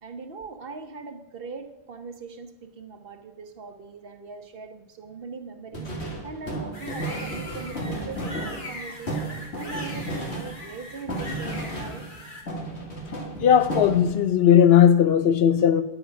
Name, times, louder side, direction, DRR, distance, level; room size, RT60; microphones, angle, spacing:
voice 1, 0.0-12.1, right 4 dB, 60° right, 1.1 m, -40 dB
sound 1, 5.7-12.2 12.5-14.3, right 1 dB, 85° left, 2.3 m, -33 dB
sound 2, 6.7-12.4, left 1 dB, 50° left, 1.8 m, -40 dB
voice 2, 13.4-15.8, left 9 dB, 70° left, 0.8 m, -17 dB
9.9 x 8.1 x 5.7 m
omnidirectional pair, 1.1 m